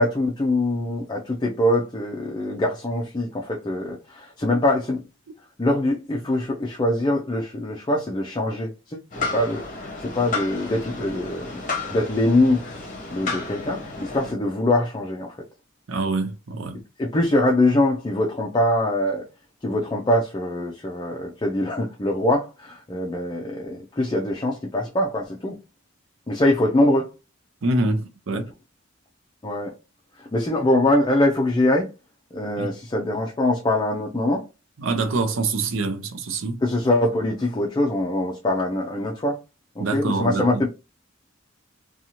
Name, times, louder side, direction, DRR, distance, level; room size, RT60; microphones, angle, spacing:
voice 1, 0.0-5.1 5.6-11.6 11.9-12.6 13.1-15.4 17.0-19.3 19.6-25.6 26.3-27.1 28.3-28.4 29.4-29.7 30.2-31.9 32.3-34.4 36.6-39.4 39.8-40.7, left 1 dB, 20° left, 0.4 m, -23 dB
sound 1, 9.1-14.3, left 3 dB, 40° left, 0.8 m, -32 dB
voice 2, 15.9-16.8 27.6-28.5 32.6-32.7 34.8-36.6 39.8-40.6, right 3 dB, 75° right, 0.6 m, -25 dB
2.7 x 2.3 x 2.8 m
head